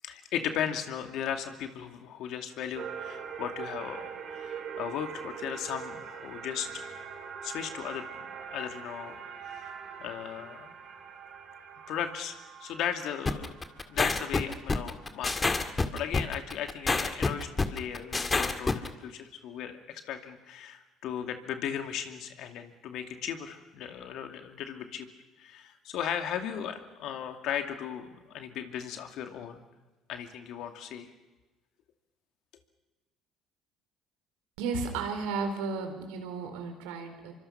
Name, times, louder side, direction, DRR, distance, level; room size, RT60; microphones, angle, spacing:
voice 1, 0.0-6.9 7.4-9.2 9.5-10.7 11.9-25.1 25.4-29.6 30.1-31.1, left 9 dB, 70° left, 5 dB, 2.5 m, -37 dB
sound 1, 2.7-15.4, right 7 dB, 60° right, 6.4 m, -43 dB
sound 2, 13.3-18.9, left 3 dB, 25° left, 2.0 m, -27 dB
voice 2, 34.6-37.3, right 4 dB, 80° right, 5 dB, 4.2 m, -33 dB
26.0 x 24.5 x 5.9 m, 1.2 s
hypercardioid pair, 65°, 0 cm